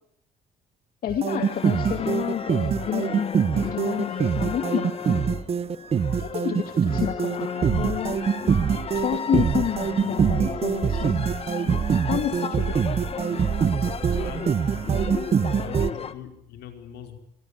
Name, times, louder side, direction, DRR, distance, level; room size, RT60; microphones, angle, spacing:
voice 1, 1.0-4.9 6.2-8.2 8.9-11.3 12.1-12.7, left 9 dB, 60° left, 6 dB, 2.4 m, -29 dB
sound 1, 1.1-15.9, right 7 dB, 35° right, 1.1 m, -24 dB
sound 2, 1.3-16.1, left 6 dB, 35° left, 1.5 m, -35 dB
voice 2, 14.0-14.6 15.6-17.2, left 9 dB, 75° left, 5 dB, 5.2 m, -42 dB
27.5 x 22.0 x 8.5 m, 0.71 s
cardioid pair, 110°, 17 cm